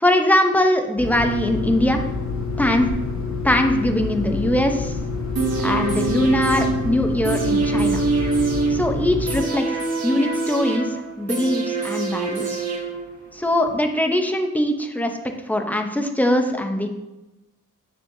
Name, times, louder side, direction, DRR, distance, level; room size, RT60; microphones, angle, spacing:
voice 1, 0.0-2.0 2.6-2.9 3.4-5.0 5.6-8.1 8.7-9.7 10.0-12.6 13.3-15.2 15.5-16.9, left 1 dB, 5° left, 4 dB, 0.6 m, -21 dB
sound 1, 1.0-9.4, left 4 dB, 55° left, 1.9 m, -28 dB
sound 2, 5.3-13.3 13.7-13.8, right 4 dB, 50° right, 2.0 m, -25 dB
8.7 x 7.1 x 2.7 m, 1.0 s
wide cardioid pair, 150°, 33 cm